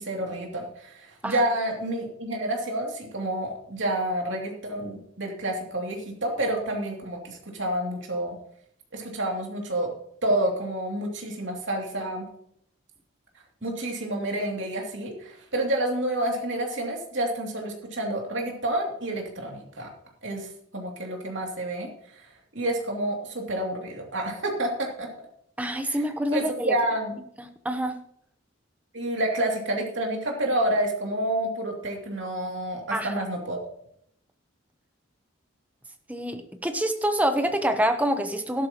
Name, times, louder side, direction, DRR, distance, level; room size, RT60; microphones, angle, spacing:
voice 1, 0.0-8.4 8.9-9.9 10.2-12.3 13.6-19.9 20.2-20.5 20.7-21.9 22.2-22.3 22.5-25.1 25.8-26.0 26.3-27.2 28.9-33.7, right 1 dB, 65° right, 0 dB, 2.8 m, -29 dB
voice 2, 25.6-26.7 27.4-28.0 32.9-33.2 36.1-38.7, equal, 5° right, 7 dB, 0.9 m, -26 dB
13.5 x 11.5 x 3.0 m, 0.68 s
head